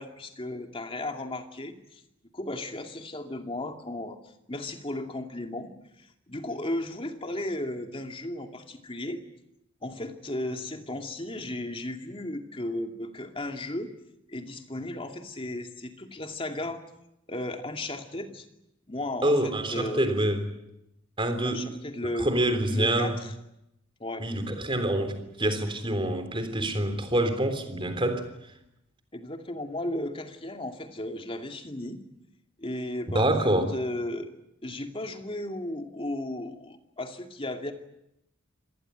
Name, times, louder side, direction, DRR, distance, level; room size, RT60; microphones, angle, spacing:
voice 1, 0.0-2.0 2.3-4.2 4.5-5.7 6.0-9.2 9.8-13.9 14.3-16.8 17.3-18.5 18.9-20.1 21.4-22.4 22.7-23.3 24.0-24.2 29.1-32.0 32.6-34.4 34.6-37.7, left 1 dB, 25° left, 2.5 m, -35 dB
voice 2, 19.2-20.4 21.2-21.7 22.0-23.2 24.2-28.3 33.1-33.7, right 1 dB, 25° right, 3.5 m, -26 dB
26.5 x 19.0 x 9.3 m
head